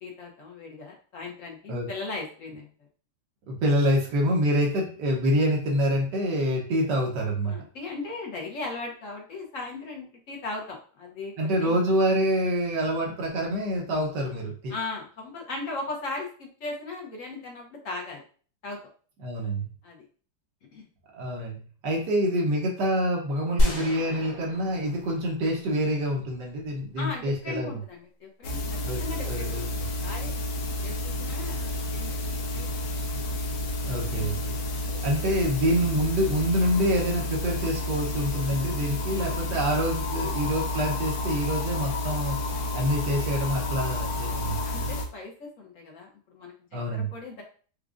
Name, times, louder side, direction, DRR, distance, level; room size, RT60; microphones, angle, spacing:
voice 1, 0.0-2.7 7.4-11.8 14.7-18.2 18.6-18.8 19.8-20.1 20.7-20.9 27.0-30.3 30.8-32.9 44.6-47.4, left 3 dB, 60° left, 0 dB, 1.0 m, -38 dB
voice 2, 3.5-7.6 11.4-14.7 19.2-19.7 21.1-21.6 21.8-27.7 28.8-29.6 33.9-34.4 35.0-42.4 42.7-44.8 46.7-47.1, equal, 85° right, -1 dB, 1.5 m, -26 dB
sound 1, 23.6-26.5, equal, 35° left, 0.8 m, -29 dB
sound 2, 28.4-45.0, left 2 dB, 90° left, 1.3 m, -30 dB
4.9 x 2.3 x 2.4 m, 0.41 s
omnidirectional pair, 1.8 m